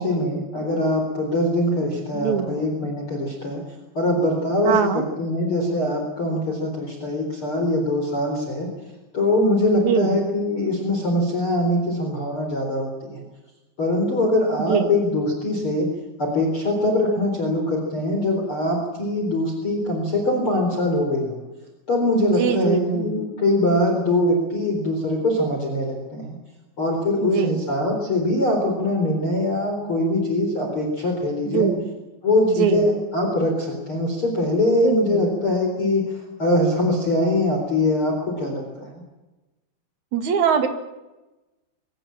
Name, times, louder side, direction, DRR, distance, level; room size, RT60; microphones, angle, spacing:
voice 1, 0.0-3.6 3.9-8.7 9.1-13.2 13.8-15.9 16.2-21.4 21.9-26.3 26.8-31.7 32.2-38.9, left 1 dB, 30° left, 2 dB, 4.6 m, -22 dB
voice 2, 2.1-2.6 4.6-5.0 9.7-10.2 14.6-14.9 22.2-23.1 27.2-27.6 31.5-31.9 32.5-32.9 34.8-35.3 40.1-40.7, right 7 dB, 50° right, 8 dB, 2.9 m, -23 dB
23.5 x 18.5 x 8.9 m, 1.1 s
omnidirectional pair, 5.0 m